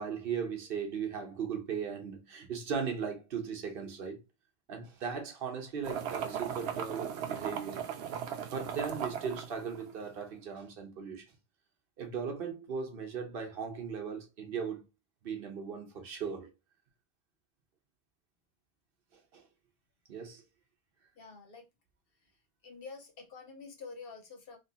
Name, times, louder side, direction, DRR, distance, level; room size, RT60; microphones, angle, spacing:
voice 1, 0.0-4.2 4.7-7.8 8.4-11.2 12.0-14.8 15.2-16.5 19.1-19.5 20.1-20.4, right 6 dB, 60° right, 1.0 m, -38 dB
sound 1, 5.8-10.2, right 8 dB, 85° right, 0.9 m, -37 dB
voice 2, 21.2-21.6 22.6-24.6, left 4 dB, 65° left, 0.9 m, -47 dB
3.0 x 2.8 x 2.8 m
omnidirectional pair, 1.1 m